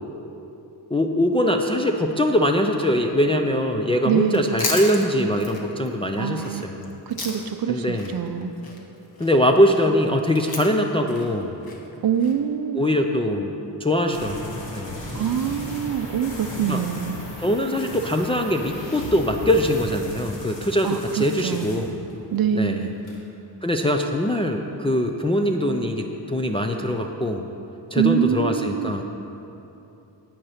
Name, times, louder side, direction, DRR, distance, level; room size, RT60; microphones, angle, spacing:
voice 1, 0.9-6.9 7.7-8.1 9.2-11.5 12.7-13.5 13.8-15.0 16.7-16.8 17.4-21.9 22.5-22.9 23.6-27.5 27.9-29.0, left 1 dB, 15° left, 2 dB, 0.3 m, -22 dB
voice 2, 4.0-4.6 6.2-6.7 7.1-8.5 12.0-12.8 15.1-17.2 20.8-21.9 22.3-23.0 28.0-28.9, right 8 dB, 55° right, 9 dB, 0.6 m, -25 dB
Chewing mastication, 4.2-7.7 8.0-12.3, left 3 dB, 55° left, 1.3 m, -34 dB
sound 1, 14.1-22.4 22.7-23.1, left 1 dB, 75° left, 2.8 m, -36 dB
9.5 x 8.7 x 5.7 m, 2.9 s
wide cardioid pair, 165°, 44 cm